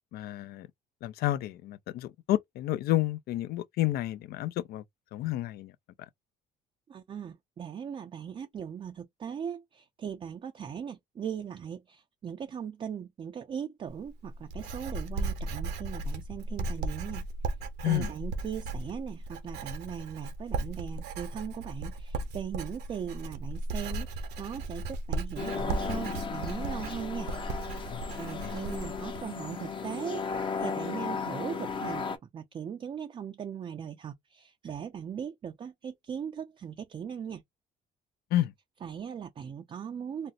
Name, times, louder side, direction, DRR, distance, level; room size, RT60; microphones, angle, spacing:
voice 1, 0.1-0.7 1.0-4.8 5.1-5.7 17.8-18.1 27.9-28.0 28.4-28.6 38.3-38.5, left 14 dB, 65° left, 0.4 m, -30 dB
voice 2, 6.9-17.3 17.8-27.3 28.2-30.3 30.6-37.4 38.8-40.3, right 8 dB, 30° right, 0.4 m, -39 dB
Writing, 13.9-29.2, right 2 dB, 75° right, 0.8 m, -36 dB
sound 1, 25.4-32.2, left 5 dB, 30° left, 0.6 m, -35 dB
4.0 x 2.0 x 2.4 m
cardioid pair, 110°, 17 cm